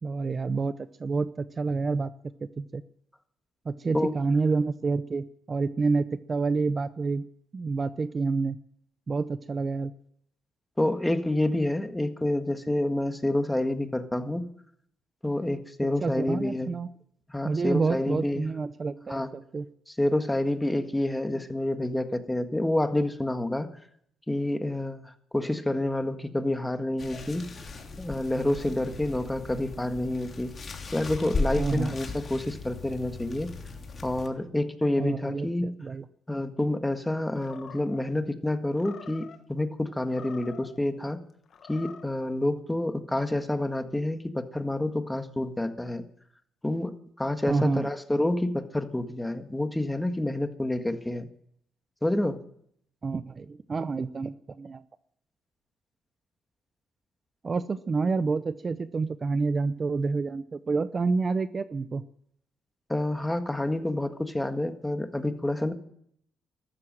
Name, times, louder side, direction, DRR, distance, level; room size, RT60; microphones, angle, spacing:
voice 1, 0.0-2.1 2.6-2.8 3.7-7.2 7.5-8.6 9.1-9.9 16.0-16.9 17.4-19.7 31.6-32.0 35.0-36.1 47.5-47.9 53.0-54.8 57.4-62.0, right 4 dB, 35° right, 13 dB, 0.7 m, -28 dB
voice 2, 10.8-14.5 15.2-16.7 17.3-18.5 19.1-19.3 19.9-23.7 24.3-27.5 28.0-30.5 30.9-33.5 34.0-35.7 36.3-41.2 41.7-46.0 46.6-51.3 52.0-52.4 62.9-65.7, left 1 dB, 10° left, 8 dB, 1.7 m, -28 dB
sound 1, 27.0-34.3, left 3 dB, 40° left, 3.1 m, -36 dB
Animal, 37.3-38.1 38.7-39.4 40.0-40.8 41.5-42.1, left 7 dB, 55° left, 1.4 m, -46 dB
14.0 x 12.5 x 7.6 m, 0.68 s
cardioid pair, 90°, 0 cm